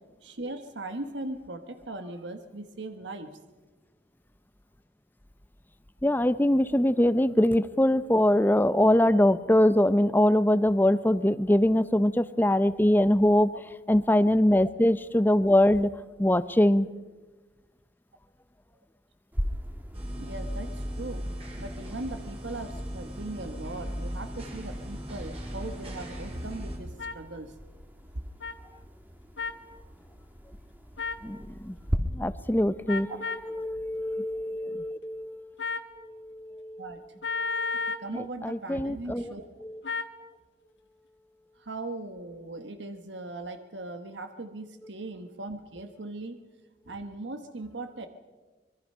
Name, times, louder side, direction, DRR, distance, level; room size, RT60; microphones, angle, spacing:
voice 1, 0.2-3.3 13.3-13.6 20.2-21.3 21.6-27.5 33.1-33.2 36.8-37.0 37.9-39.5 41.6-46.4 46.9-48.1, right 2 dB, 80° right, 7 dB, 1.3 m, -39 dB
voice 2, 6.0-13.5 13.9-15.9 16.2-16.9 31.2-31.8 32.1-33.2 33.5-35.5 36.0-37.0 37.4-39.3 39.6-39.8, left 1 dB, 10° left, 14 dB, 0.6 m, -23 dB
sound 1, 19.3-32.0, equal, 10° right, 1.6 m, -40 dB
sound 2, 19.9-26.8, equal, 35° right, 4.7 m, -37 dB
sound 3, 27.0-27.2 28.4-28.5 29.4-29.6 31.0-31.3 32.9-33.5 35.6-35.9 37.2-38.1 39.8-40.1, left 4 dB, 80° left, 1.3 m, -32 dB
26.0 x 22.0 x 5.6 m, 1.3 s
head